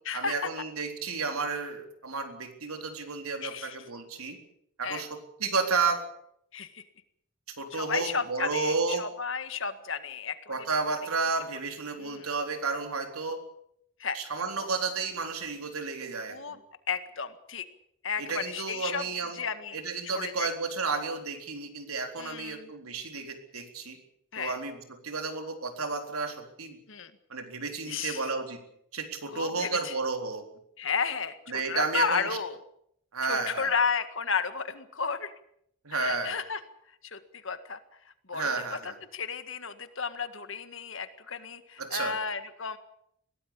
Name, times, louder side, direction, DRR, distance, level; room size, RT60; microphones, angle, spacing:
voice 1, 0.1-4.4 4.8-6.0 7.6-9.1 10.5-13.4 14.1-16.6 18.2-19.4 19.7-24.0 24.4-26.8 27.3-28.6 28.9-30.5 31.5-32.3 33.1-33.8 35.8-36.4 38.3-38.9 41.8-42.2, right 4 dB, 85° right, 5 dB, 3.9 m, -32 dB
voice 2, 3.4-3.8 4.8-5.0 6.5-6.8 7.7-10.5 12.0-12.3 14.0-14.2 16.3-16.6 16.9-17.7 18.0-19.0 19.3-20.5 22.2-22.7 24.3-24.6 26.9-27.1 27.9-28.3 29.3-29.9 30.8-32.6 33.3-35.3 35.9-36.6 37.0-37.8 38.3-42.8, left 5 dB, 60° left, 10 dB, 1.8 m, -33 dB
22.0 x 17.0 x 8.5 m, 0.72 s
head